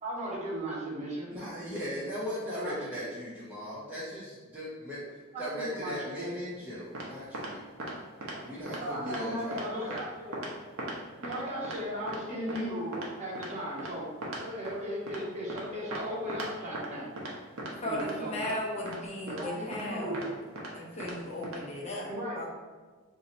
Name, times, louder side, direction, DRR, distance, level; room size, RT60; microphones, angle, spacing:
voice 1, 0.0-1.3 2.5-2.8 5.3-6.3 8.3-8.4 8.8-10.4 11.2-14.0 14.4-17.1 17.8-18.3 19.2-20.2 22.1-22.4, equal, 35° right, -5 dB, 0.9 m, -36 dB
voice 2, 1.3-7.6 8.4-9.9, equal, 10° right, -10 dB, 0.6 m, -38 dB
sound 1, 6.9-7.1 7.3-7.5 7.8-7.9 8.2-8.4 8.7-8.8 9.1-9.2 9.5-9.6 9.9-10.0 10.3-10.5 10.8-10.9 11.2-11.4 11.6-11.8 12.1-12.2 12.5-12.6 12.9-13.1 13.4-13.5 13.8-13.9 14.2-14.4 14.6-14.7 15.1-15.2 15.5-15.6 15.9-16.0 16.3-16.5 16.7-16.9 17.2-17.3 17.6-17.7 18.0-18.1 18.4-18.5 18.9-19.0 19.3-19.4 19.7-19.8 20.1-20.3 20.6-20.7 21.0-21.1 21.4-21.6, right 2 dB, 80° right, 0.7 m, -38 dB
voice 3, 17.8-20.3 20.7-22.1 22.4-22.5, left 1 dB, 30° left, -4 dB, 0.7 m, -36 dB
2.7 x 2.6 x 4.1 m, 1.4 s
head